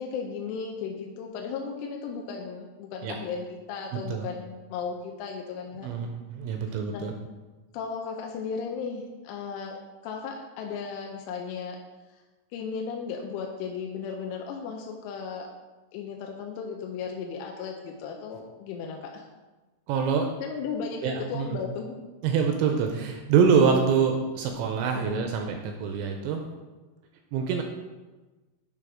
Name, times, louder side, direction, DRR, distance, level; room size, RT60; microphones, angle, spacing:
voice 1, 0.0-5.9 6.9-7.1 7.7-9.8 10.0-11.8 12.5-15.5 15.9-19.3 20.4-22.0 25.0-25.2, left 6 dB, 85° left, 1 dB, 3.1 m, -35 dB
voice 2, 3.9-4.2 5.8-7.1 19.9-20.3 21.0-21.6 22.2-26.4 27.3-27.6, right 6 dB, 80° right, 4 dB, 2.6 m, -25 dB
9.1 x 3.4 x 4.9 m, 1.2 s
omnidirectional pair, 5.5 m